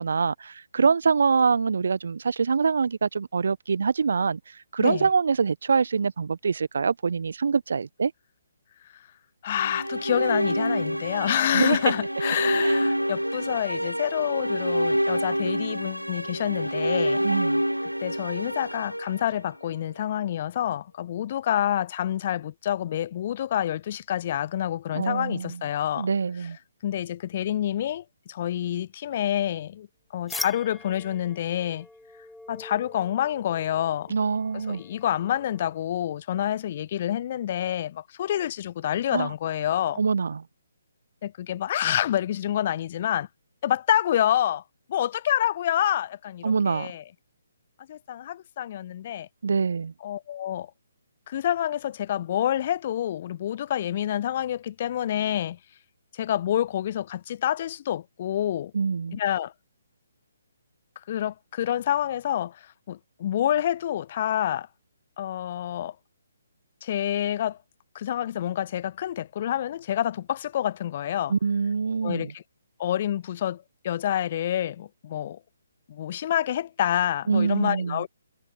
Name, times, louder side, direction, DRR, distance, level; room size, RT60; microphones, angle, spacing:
voice 1, 0.0-4.4 4.7-8.1 11.5-11.8 12.6-12.8 17.2-17.6 24.9-25.6 26.0-26.6 34.1-34.8 39.1-39.3 40.0-40.4 46.4-46.9 49.4-49.9 58.7-59.2 71.3-72.3 77.3-78.0, right 5 dB, 55° right, 1.2 m, -24 dB
voice 2, 9.4-17.2 18.0-26.1 26.4-26.5 26.8-29.9 30.1-31.9 32.5-34.1 34.5-40.0 41.2-43.3 43.6-44.6 44.9-47.0 47.9-49.3 50.0-50.7 51.3-55.6 56.1-58.7 59.1-59.5 61.1-64.7 65.2-65.9 66.8-67.6 67.9-71.3 72.0-72.4 72.8-75.4 75.9-78.1, left 11 dB, 35° left, 1.0 m, -27 dB
sound 1, 9.6-19.8, equal, 90° right, 0.4 m, -27 dB
sound 2, 30.3-35.8, left 1 dB, ahead, 0.6 m, -42 dB
figure-of-eight pair, 135°, 0 cm